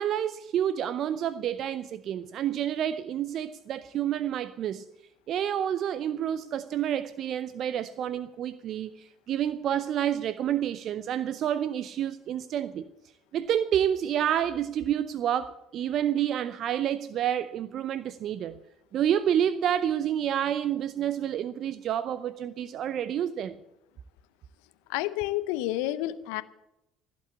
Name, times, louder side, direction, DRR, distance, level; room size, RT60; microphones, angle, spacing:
voice 1, 0.0-4.8 5.3-12.9 13.3-18.6 18.9-23.6, right 10 dB, 55° right, 0.6 m, -29 dB
voice 2, 24.9-26.4, left 15 dB, 75° left, 0.7 m, -29 dB
16.0 x 8.6 x 8.3 m
hypercardioid pair, 55°, 0 cm